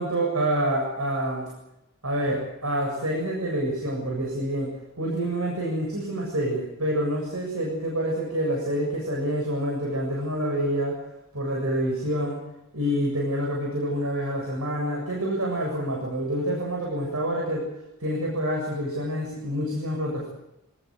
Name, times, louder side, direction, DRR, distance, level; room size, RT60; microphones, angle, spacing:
voice 1, 0.0-1.5 2.0-4.7 5.0-11.0 11.3-12.4 12.7-17.7 18.0-20.3, right 1 dB, 75° right, 0 dB, 7.4 m, -27 dB
27.0 x 19.5 x 7.9 m, 0.89 s
head